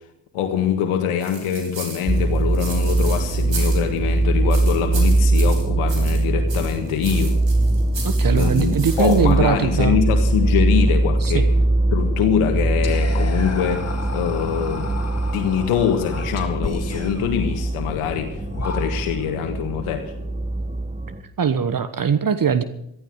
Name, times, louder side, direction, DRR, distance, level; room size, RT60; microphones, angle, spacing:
voice 1, 0.3-7.4 8.3-11.5 11.9-14.9 15.3-20.1, left 8 dB, 80° left, 5 dB, 1.7 m, -24 dB
sound 1, 1.2-4.1 4.5-6.2 6.5-9.5, right 4 dB, 60° right, 6.3 m, -36 dB
sound 2, 2.1-21.2, right 2 dB, 15° right, 1.6 m, -21 dB
voice 2, 8.0-10.0 11.2-11.4 21.4-22.6, right 6 dB, 40° right, 12 dB, 1.3 m, -21 dB
Whispering, 12.8-19.3, left 4 dB, 30° left, 3.4 m, -34 dB
14.5 x 13.0 x 6.5 m, 0.79 s
supercardioid pair, 55°, 50 cm